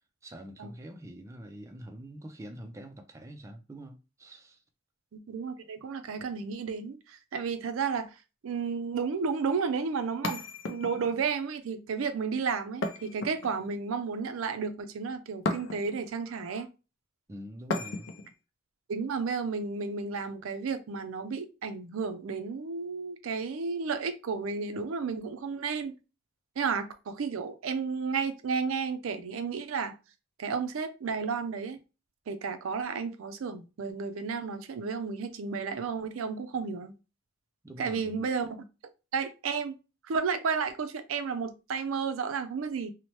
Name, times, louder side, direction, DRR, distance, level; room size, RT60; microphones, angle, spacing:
voice 1, 0.2-4.6 17.3-18.1 37.6-38.3, right 1 dB, 15° right, 0.3 m, -45 dB
voice 2, 5.1-8.1 8.4-16.7 18.9-25.9 26.6-29.9 30.4-31.8 32.3-36.9 37.8-38.5 39.1-39.7 40.1-42.9, right 5 dB, 85° right, 0.4 m, -32 dB
sound 1, 10.2-11.2 12.8-13.8 15.4-16.1 17.7-18.3, left 3 dB, 65° left, 0.5 m, -34 dB
3.0 x 2.1 x 2.9 m
head